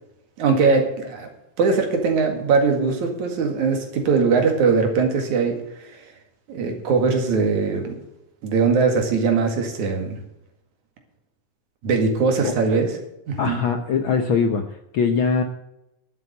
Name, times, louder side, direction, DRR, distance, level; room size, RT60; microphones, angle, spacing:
voice 1, 0.4-1.3 1.6-5.9 6.5-8.0 8.4-10.2 11.8-12.9 13.3-13.6, right 4 dB, 75° right, 4 dB, 3.4 m, -21 dB
voice 2, 13.4-15.4, left 5 dB, 70° left, 6 dB, 1.2 m, -22 dB
12.0 x 7.5 x 8.0 m, 0.88 s
omnidirectional pair, 3.4 m